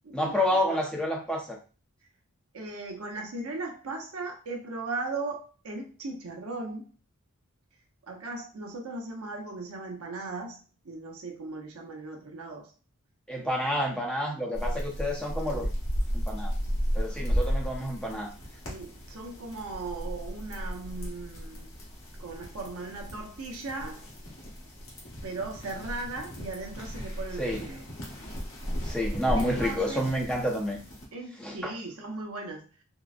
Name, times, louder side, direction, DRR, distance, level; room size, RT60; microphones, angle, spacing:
voice 1, 0.1-1.6 13.3-15.7 16.1-16.5 16.9-18.3 27.4-27.6 28.8-30.8 31.4-31.7, equal, 5° left, -1 dB, 0.6 m, -29 dB
voice 2, 2.5-6.9 8.0-12.7 18.7-21.7 22.2-24.0 25.2-27.9 29.4-30.0 31.1-32.7, right 3 dB, 85° right, 2 dB, 0.7 m, -38 dB
sound 1, 14.5-31.1, equal, 70° left, 1.1 m, -34 dB
3.7 x 2.0 x 2.4 m, 0.35 s
head